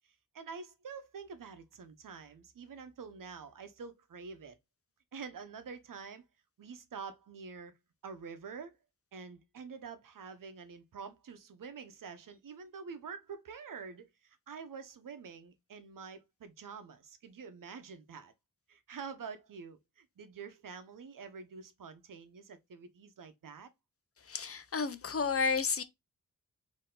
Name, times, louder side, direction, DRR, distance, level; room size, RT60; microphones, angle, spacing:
voice 1, 0.3-4.6 5.1-6.2 6.6-7.7 8.0-8.7 9.1-18.3 18.7-23.7, right 5 dB, 85° right, 0.9 m, -47 dB
voice 2, 24.2-25.8, left 5 dB, 45° left, 0.6 m, -31 dB
4.5 x 2.9 x 3.7 m
wide cardioid pair, 105°, 32 cm